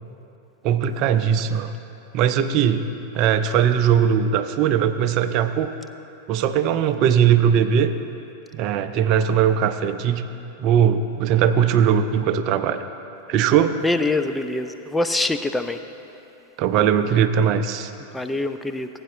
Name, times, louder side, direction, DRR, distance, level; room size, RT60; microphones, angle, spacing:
voice 1, 0.6-1.7 2.1-2.8 3.2-5.7 6.3-7.9 8.5-10.2 10.6-12.8 13.3-13.8 16.6-17.9, right 8 dB, 40° right, 10 dB, 0.5 m, -19 dB
voice 2, 13.8-15.8 18.1-18.9, left 2 dB, 5° left, 8 dB, 0.5 m, -24 dB
19.5 x 9.4 x 2.6 m, 2.9 s
figure-of-eight pair, 90°, 0 cm